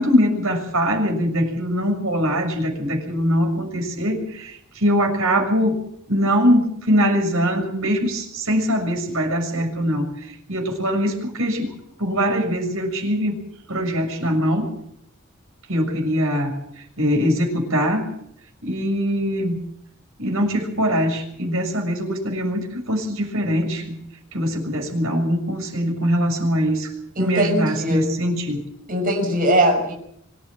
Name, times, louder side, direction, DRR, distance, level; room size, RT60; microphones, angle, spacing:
voice 1, 0.0-5.7 6.1-11.7 12.0-13.4 13.7-14.7 15.7-18.1 18.6-19.6 20.2-24.0 24.3-26.9 27.2-28.6, equal, 75° right, 4 dB, 6.8 m, -22 dB
voice 2, 27.2-28.0 28.9-29.9, right 1 dB, 40° right, 2 dB, 6.3 m, -20 dB
25.5 x 12.0 x 9.2 m, 0.71 s
head